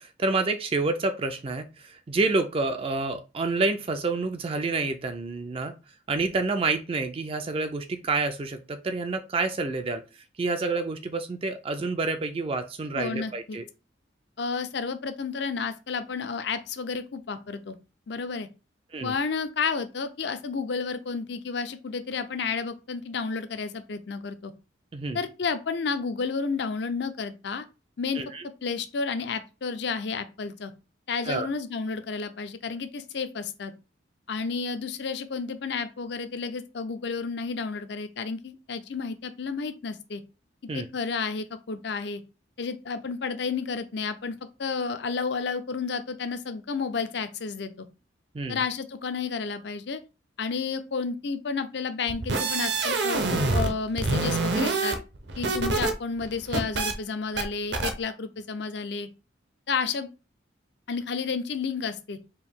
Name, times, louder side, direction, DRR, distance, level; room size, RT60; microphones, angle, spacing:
voice 1, 0.0-5.7 6.1-10.0 10.4-13.6 18.9-19.2 24.9-25.2 28.1-28.4 31.2-31.5 40.7-40.9 48.3-48.6, right 3 dB, 30° right, 0.3 m, -28 dB
voice 2, 12.9-13.6 14.4-17.8 18.1-18.5 19.0-24.5 25.1-27.6 28.0-28.2 28.6-30.7 31.1-33.7 34.3-40.2 40.7-42.2 42.6-47.9 48.5-50.0 50.4-55.0 55.4-59.1 59.7-60.1 60.9-62.2, left 5 dB, 60° left, 0.5 m, -31 dB
sound 1, 52.1-53.7 54.0-55.9 56.2-56.9 57.4-57.5 57.7-57.9, right 3 dB, 60° right, 0.7 m, -26 dB
4.5 x 2.6 x 3.5 m
head